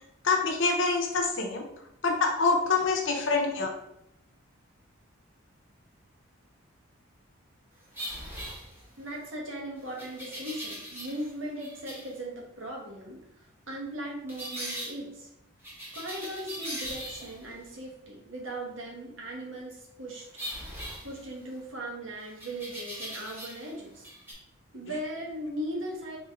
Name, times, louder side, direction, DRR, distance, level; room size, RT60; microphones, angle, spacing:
voice 1, 0.2-1.6 2.0-3.7, left 4 dB, 60° left, 1 dB, 0.8 m, -26 dB
sound 1, 7.9-9.1 10.0-11.3 11.6-12.1 14.3-14.9 15.6-17.5 20.4-21.6 22.4-23.7 24.0-24.3, equal, 10° right, 1.1 m, -40 dB
voice 2, 9.0-15.3 15.9-20.3 21.0-24.1 24.7-26.2, right 1 dB, 65° right, -2 dB, 1.2 m, -38 dB
4.0 x 3.2 x 3.6 m, 0.79 s
head